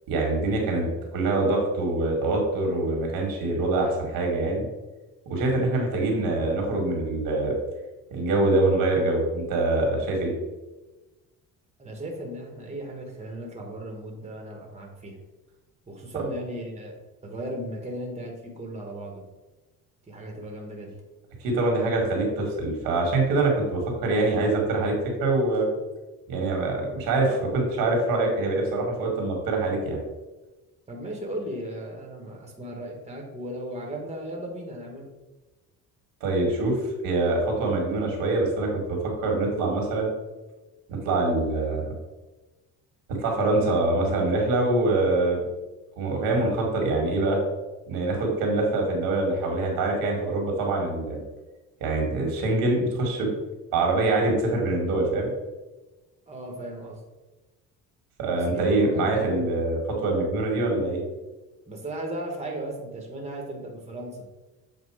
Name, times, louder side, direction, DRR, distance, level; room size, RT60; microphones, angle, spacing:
voice 1, 0.1-4.7 5.3-7.5 8.1-10.3 21.4-25.7 26.3-30.0 36.2-36.8 37.0-39.0 39.2-40.1 40.9-41.9 43.1-45.4 46.0-47.4 47.9-51.2 51.8-53.3 53.7-55.3 58.2-61.0, right 2 dB, 85° right, 1 dB, 2.0 m, -24 dB
voice 2, 11.8-15.2 15.9-16.9 17.2-19.2 20.1-20.9 30.9-35.1 56.3-57.0 58.3-59.4 61.7-64.2, right 1 dB, 20° right, 1 dB, 1.3 m, -36 dB
7.7 x 2.6 x 4.8 m, 1.1 s
cardioid pair, 115°, 34 cm